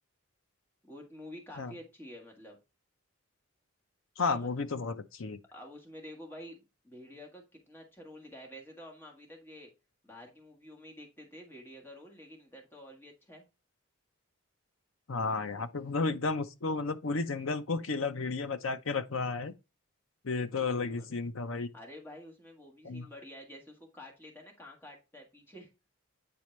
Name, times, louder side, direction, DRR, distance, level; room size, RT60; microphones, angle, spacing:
voice 1, 0.8-2.6 4.3-4.7 5.5-9.7 10.0-13.4 20.5-21.1 21.7-25.7, left 1 dB, 10° left, 1.6 m, -49 dB
voice 2, 4.2-5.4 15.1-19.5 20.2-21.7 22.8-23.1, left 4 dB, 75° left, 0.7 m, -32 dB
8.8 x 4.2 x 3.2 m
head